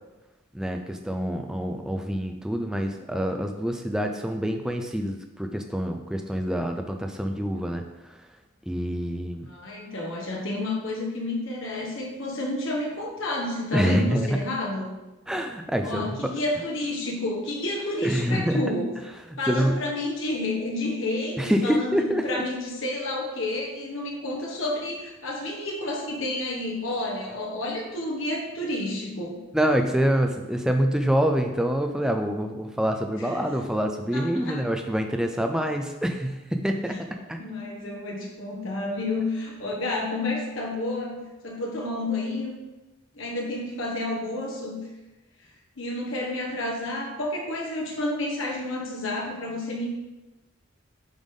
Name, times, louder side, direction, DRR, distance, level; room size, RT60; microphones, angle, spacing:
voice 1, 0.5-8.2 8.7-9.5 13.7-14.4 15.3-16.3 18.0-18.6 19.5-19.8 21.4-22.4 29.5-37.4, equal, 5° right, 4 dB, 0.4 m, -26 dB
voice 2, 9.5-14.9 15.8-18.9 19.4-29.4 33.2-33.4 34.1-34.6 36.9-37.0 37.4-42.5 43.1-44.8 45.8-49.9, left 2 dB, 70° left, -1 dB, 1.3 m, -30 dB
9.0 x 3.5 x 3.7 m, 1.0 s
head